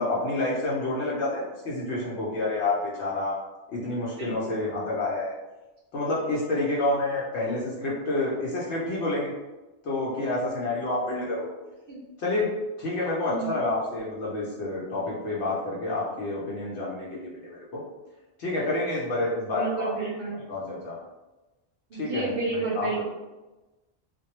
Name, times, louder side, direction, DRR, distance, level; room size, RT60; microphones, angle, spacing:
voice 1, 0.0-3.4 3.7-5.3 5.9-9.3 9.8-11.5 12.2-12.5 12.8-17.3 17.7-17.8 18.4-20.1 20.5-21.0 21.9-22.9, left 2 dB, 75° left, -5 dB, 0.9 m, -28 dB
voice 2, 4.2-4.5 11.9-12.0 13.3-13.5 19.5-20.4 21.9-23.0, right 4 dB, 60° right, -4 dB, 0.7 m, -31 dB
2.2 x 2.1 x 2.9 m, 1.1 s
omnidirectional pair, 1.2 m